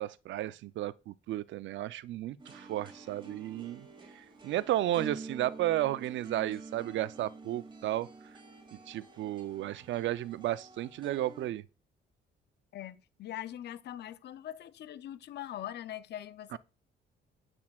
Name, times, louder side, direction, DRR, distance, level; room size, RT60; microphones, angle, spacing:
voice 1, 0.0-3.9 4.2-8.1 8.9-11.6 16.5-16.6, right 14 dB, 70° right, 0.4 m, -33 dB
sound 1, 2.4-11.5, right 3 dB, 25° right, 2.2 m, -48 dB
voice 2, 12.7-16.6, left 12 dB, 60° left, 0.5 m, -42 dB
8.5 x 6.2 x 2.3 m
cardioid pair, 90°, 20 cm